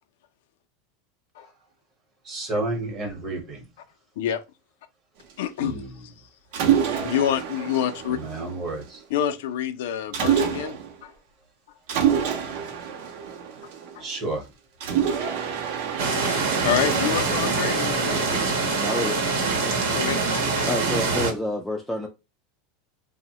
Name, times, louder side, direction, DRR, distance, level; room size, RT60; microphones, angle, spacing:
voice 1, 2.3-3.6 5.6-5.9 8.1-9.0 14.0-14.4, right 2 dB, 30° right, 0.8 m, -30 dB
voice 2, 5.4-6.1 7.0-8.2 9.1-11.1 13.6-14.1 15.0-15.1 16.1-16.2 16.6-18.5 19.9-20.7, left 10 dB, 80° left, 0.4 m, -28 dB
Mechanisms, 6.5-9.0 10.1-11.0 11.9-14.2 14.8-19.0, right 8 dB, 60° right, 0.6 m, -27 dB
sound 1, 16.0-21.3, right 4 dB, 85° right, 0.9 m, -24 dB
voice 3, 18.8-19.2 20.7-22.1, left 1 dB, 5° left, 0.3 m, -28 dB
3.0 x 2.0 x 2.8 m
supercardioid pair, 155°, 0 cm